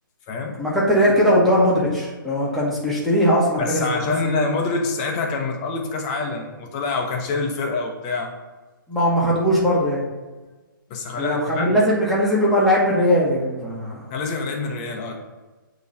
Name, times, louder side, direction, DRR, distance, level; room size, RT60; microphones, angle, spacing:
voice 1, 0.6-3.9 4.2-4.4 8.9-10.0 11.2-14.0, equal, ahead, -8 dB, 1.1 m, -19 dB
voice 2, 3.6-8.3 10.9-11.8 14.1-15.2, left 3 dB, 20° left, 2 dB, 0.8 m, -26 dB
8.2 x 3.1 x 5.3 m, 1.2 s
hypercardioid pair, 160°, 12 cm